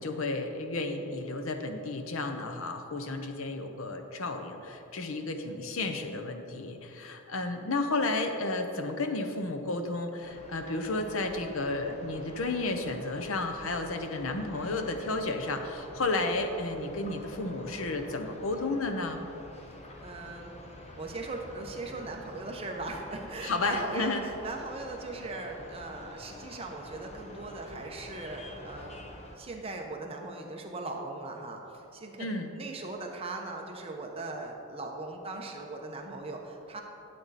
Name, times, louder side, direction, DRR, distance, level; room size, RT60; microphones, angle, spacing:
voice 1, 0.0-19.2 23.4-24.2 32.2-32.5, left 2 dB, 70° left, 6 dB, 0.8 m, -32 dB
sound 1, 10.2-29.4, left 1 dB, 30° left, 0.9 m, -48 dB
voice 2, 20.0-20.5 21.0-28.9 29.4-36.8, right 2 dB, 25° right, 1 dB, 1.0 m, -39 dB
12.0 x 7.9 x 4.2 m, 3.0 s
head